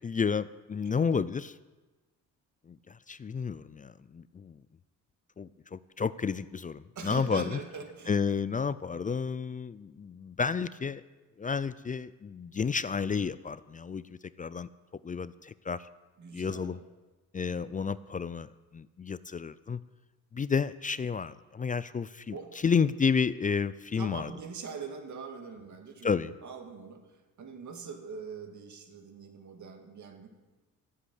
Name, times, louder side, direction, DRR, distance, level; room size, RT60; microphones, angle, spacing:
voice 1, 0.0-1.5 2.7-4.6 5.4-7.6 8.1-11.0 11.4-14.0 14.4-14.7 15.0-15.9 16.3-16.8 17.3-19.8 20.3-22.4 22.6-24.3 26.0-26.3, left 6 dB, 25° left, 16 dB, 0.4 m, -31 dB
voice 2, 7.0-8.1 16.2-16.8 22.3-22.6 24.0-30.3, right 5 dB, 55° right, 5 dB, 2.2 m, -42 dB
14.0 x 7.7 x 8.3 m, 1.2 s
cardioid pair, 85°, 34 cm